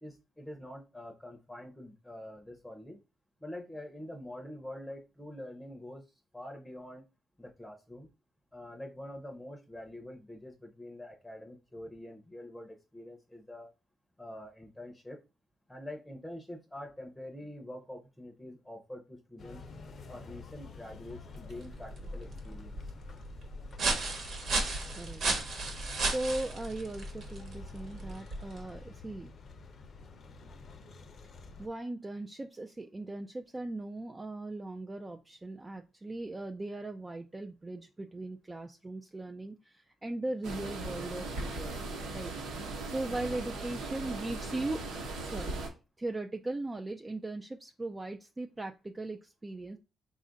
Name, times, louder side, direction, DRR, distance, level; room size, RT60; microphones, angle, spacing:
voice 1, 0.0-3.0 3.4-6.0 6.3-7.0 7.4-8.1 8.5-13.7 14.2-15.2 15.7-19.7 20.1-22.9, left 1 dB, 10° left, 2 dB, 0.7 m, -45 dB
sound 1, 19.4-31.7, left 4 dB, 50° left, 0.6 m, -50 dB
sound 2, 21.3-28.8, right 3 dB, 65° right, 1.1 m, -35 dB
voice 2, 26.0-29.3 31.6-41.8 42.1-45.6 46.0-49.8, right 2 dB, 20° right, 4 dB, 0.4 m, -39 dB
sound 3, 40.4-45.7, right 2 dB, 90° right, 1.0 m, -38 dB
4.1 x 2.4 x 3.9 m, 0.29 s
cardioid pair, 90°, 0 cm